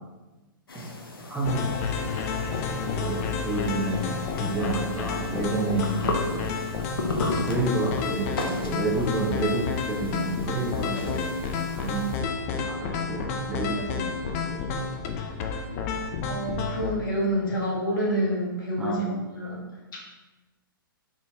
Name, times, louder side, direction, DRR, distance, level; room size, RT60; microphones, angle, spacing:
sound 1, 0.7-12.2, left 2 dB, 85° left, 0.7 m, -36 dB
voice 1, 1.3-1.6 3.0-6.5 7.5-11.3 11.8-12.3 12.5-14.8 15.1-15.2 18.8-19.2, right 2 dB, 5° right, -5 dB, 0.8 m, -30 dB
sound 2, 1.4-16.9, left 5 dB, 40° left, 0.5 m, -30 dB
voice 2, 16.2-19.6 19.9-20.0, equal, 65° left, -3 dB, 1.4 m, -28 dB
3.9 x 3.8 x 2.7 m, 1.2 s
hypercardioid pair, 120°, 12 cm